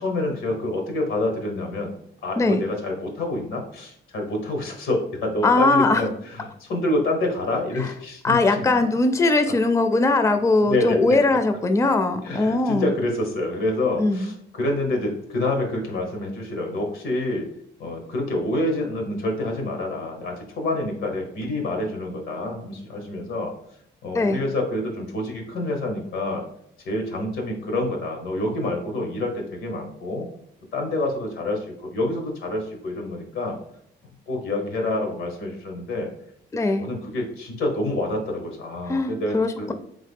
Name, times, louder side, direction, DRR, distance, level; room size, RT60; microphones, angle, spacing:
voice 1, 0.0-1.9 2.2-8.7 10.6-11.2 12.2-17.5 17.8-23.5 24.0-26.4 26.8-30.3 30.7-31.6 31.9-33.6 34.3-36.1 36.8-39.7, left 2 dB, 90° left, 3 dB, 1.2 m, -27 dB
voice 2, 5.4-6.0 7.8-7.9 8.2-12.9 14.0-14.3 24.1-24.4 36.5-36.9 38.9-39.7, left 2 dB, 15° left, 8 dB, 0.4 m, -20 dB
3.7 x 3.5 x 3.6 m, 0.74 s
cardioid pair, 90°, 20 cm